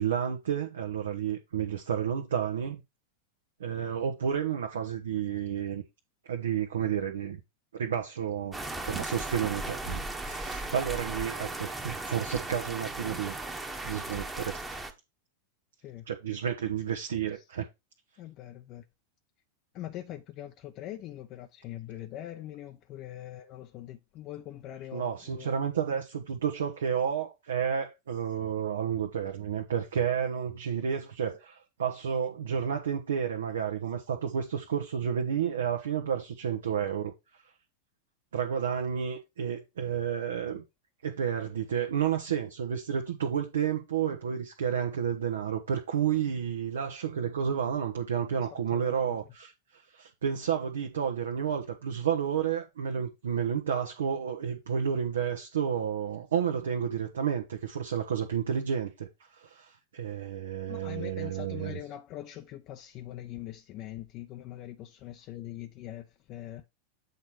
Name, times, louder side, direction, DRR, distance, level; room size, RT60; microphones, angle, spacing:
voice 1, 0.0-2.8 3.6-5.8 6.2-7.4 7.7-8.6 8.8-13.4 13.8-14.8 16.1-17.7 24.9-37.1 38.3-40.6 41.0-59.1 59.3-61.8, right 8 dB, 65° right, 1.1 m, -31 dB
sound 1, 8.5-14.9, right 2 dB, 10° right, 1.2 m, -36 dB
voice 2, 18.2-18.8 19.7-25.5 48.3-49.2 60.7-66.6, left 13 dB, 35° left, 0.6 m, -43 dB
8.2 x 4.2 x 4.6 m
figure-of-eight pair, 90°, 0 cm